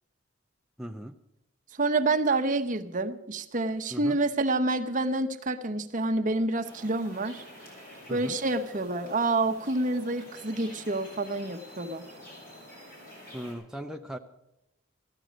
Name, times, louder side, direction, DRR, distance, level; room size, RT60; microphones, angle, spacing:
voice 1, 0.8-1.2 3.9-4.2 8.1-8.4 13.3-14.2, equal, 5° right, 3 dB, 0.4 m, -38 dB
voice 2, 1.8-7.4 8.1-12.0, right 2 dB, 40° right, 6 dB, 0.9 m, -28 dB
sound 1, 6.6-13.5, left 1 dB, 45° left, 6.8 m, -48 dB
14.5 x 12.0 x 6.3 m, 0.89 s
head